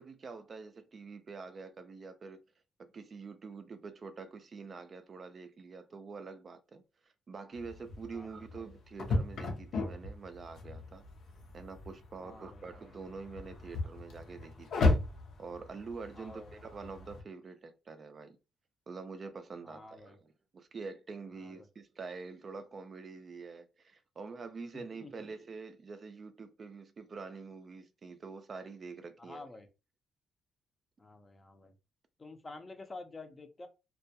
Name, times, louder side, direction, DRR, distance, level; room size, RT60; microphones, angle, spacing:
voice 1, 0.0-2.4 2.8-6.8 7.3-11.0 11.5-14.9 15.4-18.4 18.9-29.6, right 4 dB, 40° right, 0.3 m, -46 dB
sound 1, 7.5-17.2, left 2 dB, 75° left, 0.6 m, -36 dB
voice 2, 12.2-12.6 16.2-16.6 19.6-20.2 21.4-21.7 24.7-25.1 29.2-29.7 31.0-31.7 32.2-33.7, left 2 dB, 25° left, 0.5 m, -49 dB
2.2 x 2.1 x 2.7 m
cardioid pair, 90°, 0 cm